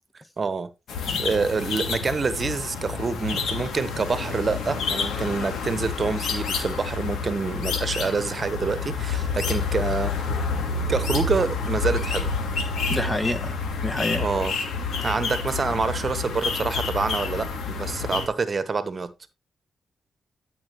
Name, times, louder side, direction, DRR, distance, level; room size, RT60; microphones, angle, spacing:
voice 1, 0.4-0.7 1.2-10.1 10.9-12.3 14.2-14.6 15.0-19.3, right 4 dB, 45° right, 1.2 m, -27 dB
sound 1, 0.9-18.3, left 5 dB, 85° left, 2.5 m, -28 dB
voice 2, 12.9-14.3, left 1 dB, 20° left, 1.3 m, -28 dB
13.5 x 6.2 x 3.1 m
cardioid pair, 70°, 0 cm